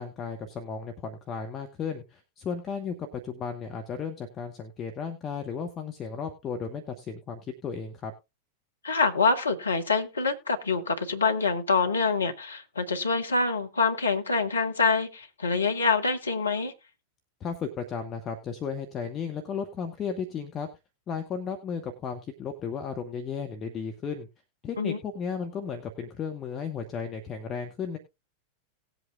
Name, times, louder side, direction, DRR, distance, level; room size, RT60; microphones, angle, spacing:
voice 1, 0.0-8.1 17.4-20.7 21.1-24.3 24.6-28.0, left 6 dB, 30° left, 1.3 m, -34 dB
voice 2, 8.8-16.7 24.8-25.0, left 4 dB, 75° left, 1.2 m, -26 dB
19.0 x 8.0 x 2.3 m
figure-of-eight pair, 90°, 0 cm